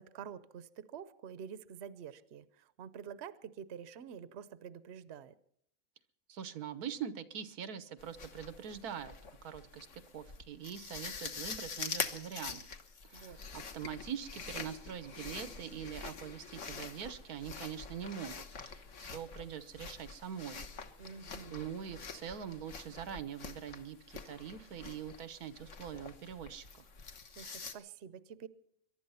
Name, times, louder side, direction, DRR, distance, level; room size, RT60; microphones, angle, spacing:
voice 1, 0.0-5.3 13.1-13.6 21.0-21.7 27.4-28.5, right 8 dB, 55° right, 15 dB, 1.0 m, -48 dB
voice 2, 6.3-9.2 9.4-9.9 10.1-12.6 13.0-20.6 21.5-26.8, right 8 dB, 90° right, 13 dB, 1.5 m, -43 dB
sound 1, 8.0-27.7, left 5 dB, 55° left, 1.6 m, -45 dB
22.5 x 11.5 x 5.6 m, 0.71 s
omnidirectional pair, 1.5 m